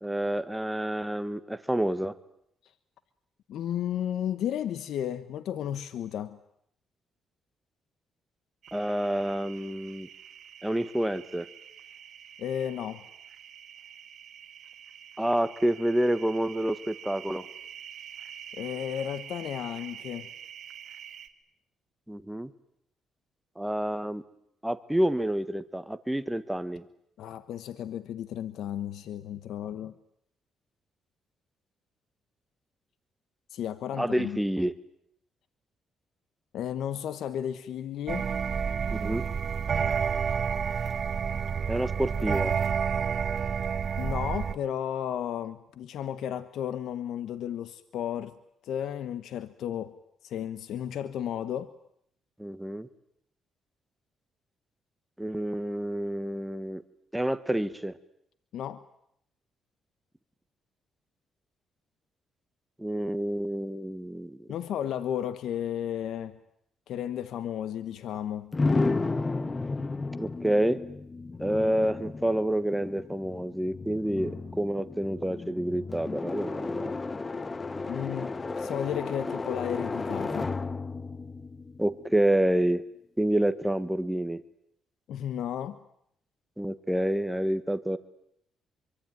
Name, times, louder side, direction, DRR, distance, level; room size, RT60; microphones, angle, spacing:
voice 1, 0.0-2.1 8.7-10.1 10.6-11.5 15.2-17.5 22.1-22.5 23.6-24.2 24.6-26.8 34.0-34.7 38.9-39.2 41.7-42.6 52.4-52.9 55.2-56.8 57.1-57.9 62.8-64.5 70.2-70.8 71.4-74.3 74.6-76.9 81.8-82.8 83.2-84.4 86.6-88.0, right 1 dB, 5° right, 13 dB, 1.4 m, -28 dB
voice 2, 3.5-6.4 12.4-13.0 18.5-20.3 27.2-29.9 33.5-34.4 36.5-38.3 44.0-48.4 48.6-51.7 58.5-58.8 64.5-66.4 66.9-68.6 77.9-80.6 85.1-85.8, left 10 dB, 75° left, 14 dB, 1.1 m, -33 dB
sound 1, 8.6-21.3, right 9 dB, 65° right, 2.4 m, -46 dB
sound 2, 38.1-44.5, right 6 dB, 45° right, 1.0 m, -29 dB
sound 3, 68.5-82.4, left 3 dB, 25° left, 1.0 m, -33 dB
25.5 x 24.0 x 9.3 m, 0.73 s
cardioid pair, 90°, 0 cm